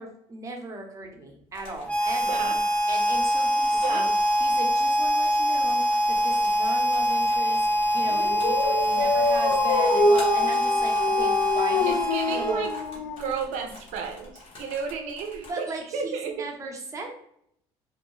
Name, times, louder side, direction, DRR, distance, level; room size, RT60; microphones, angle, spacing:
voice 1, 0.0-2.4 2.9-4.0 4.4-12.6 15.5-17.2, right 2 dB, 25° right, 2 dB, 0.7 m, -38 dB
sound 1, 1.5-15.5, left 2 dB, 45° left, 1.1 m, -47 dB
Harmonica, 1.8-12.9, equal, 10° left, 0.6 m, -24 dB
voice 2, 2.3-2.6 3.7-4.1 8.4-9.1 11.8-16.5, right 6 dB, 75° right, 4 dB, 0.4 m, -33 dB
Dog, 8.1-13.7, left 3 dB, 70° left, 0.4 m, -26 dB
2.6 x 2.1 x 3.0 m, 0.71 s
cardioid pair, 115°, 12 cm